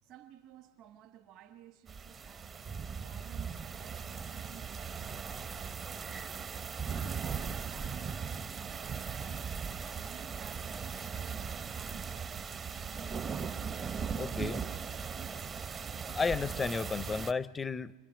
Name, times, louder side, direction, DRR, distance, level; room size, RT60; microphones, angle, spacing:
voice 1, 0.0-6.6 7.0-14.2 14.5-15.8, right 11 dB, 50° right, 1.2 m, -56 dB
sound 1, 1.9-17.3, right 6 dB, 30° right, 0.7 m, -38 dB
voice 2, 14.2-14.7 16.1-17.9, left 4 dB, 20° left, 0.5 m, -33 dB
27.5 x 23.5 x 5.1 m
hypercardioid pair, 105°, 0 cm